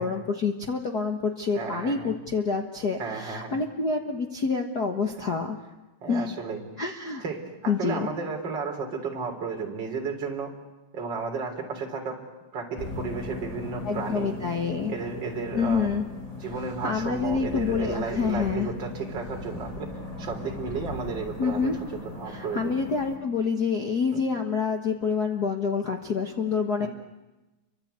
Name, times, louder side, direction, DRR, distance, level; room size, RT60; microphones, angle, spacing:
voice 1, 0.0-5.6 6.1-6.3 6.8-7.2 7.7-8.1 13.8-14.9 15.5-16.0 16.8-18.7 21.4-21.8 22.3-26.9, left 5 dB, 70° left, 3 dB, 0.9 m, -27 dB
voice 2, 1.5-2.1 3.0-3.6 6.0-6.6 7.2-10.5 10.9-12.2 12.5-14.3 14.9-15.9 16.3-19.9 20.2-21.7 22.0-22.7 24.1-24.2 26.8-26.9, right 5 dB, 30° right, 1 dB, 4.2 m, -33 dB
sound 1, 12.8-23.2, left 2 dB, 25° left, 3.9 m, -38 dB
29.0 x 24.5 x 8.2 m, 1.1 s
omnidirectional pair, 4.1 m